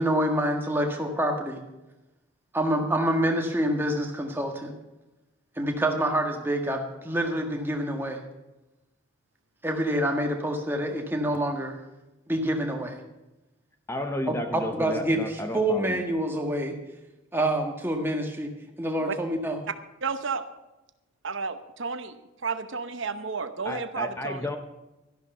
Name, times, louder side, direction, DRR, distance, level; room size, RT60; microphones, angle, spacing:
voice 1, 0.0-1.6 2.5-4.7 5.6-8.2 9.6-11.8 12.3-13.0 14.5-16.8 17.3-18.5 18.8-19.6, right 1 dB, 10° right, 2 dB, 1.7 m, -27 dB
voice 2, 13.9-16.0 23.6-24.6, left 1 dB, 15° left, 6 dB, 0.8 m, -32 dB
voice 3, 20.0-20.4 21.2-22.2 22.4-24.5, right 5 dB, 70° right, 10 dB, 0.9 m, -32 dB
13.0 x 11.5 x 5.5 m, 1.0 s
head